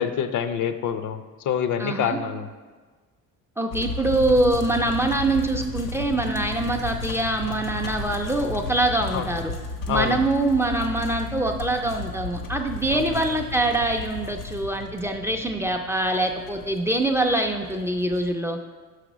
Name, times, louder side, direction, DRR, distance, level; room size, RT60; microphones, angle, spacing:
voice 1, 0.0-2.5 9.1-9.3 9.9-10.2 12.9-13.2, left 8 dB, 65° left, 10 dB, 0.6 m, -26 dB
voice 2, 1.8-2.2 3.6-9.5 9.9-18.6, right 2 dB, 10° right, 4 dB, 0.3 m, -24 dB
sound 1, 3.7-18.3, left 3 dB, 90° left, 1.1 m, -34 dB
6.1 x 4.9 x 6.0 m, 1.4 s
cardioid pair, 140°, 32 cm